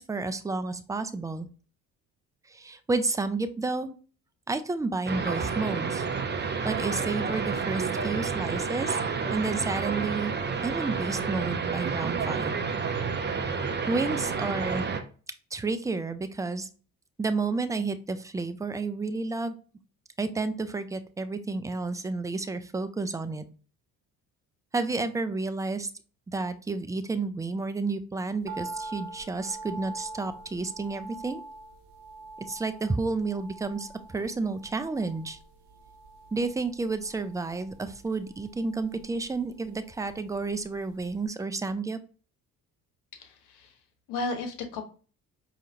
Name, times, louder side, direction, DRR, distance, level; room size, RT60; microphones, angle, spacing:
voice 1, 0.0-1.5 2.5-3.9 4.5-6.0 6.6-9.0 9.3-10.3 10.6-12.6 13.9-14.8 15.5-16.7 17.2-19.5 20.2-23.4 24.7-25.9 26.3-31.4 32.5-35.4 36.3-42.0, right 3 dB, 10° right, 10 dB, 0.4 m, -31 dB
sound 1, 5.1-15.0, right 5 dB, 25° right, 0.8 m, -30 dB
sound 2, 28.5-40.7 41.0-41.1, right 3 dB, 65° right, 1.0 m, -44 dB
voice 2, 43.1-43.7 44.1-44.9, left 3 dB, 65° left, 6 dB, 1.1 m, -34 dB
4.8 x 2.8 x 2.7 m, 0.38 s
hypercardioid pair, 50°, 43 cm